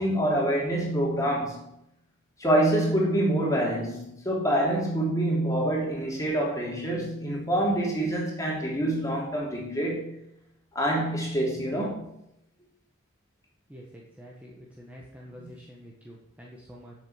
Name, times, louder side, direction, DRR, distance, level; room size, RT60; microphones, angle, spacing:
voice 1, 0.0-1.6 2.4-10.1 10.7-12.1 15.4-15.5, right 1 dB, 15° left, -3 dB, 3.2 m, -26 dB
voice 2, 13.7-16.9, equal, 5° right, -3 dB, 1.4 m, -47 dB
8.6 x 7.1 x 7.3 m, 0.79 s
head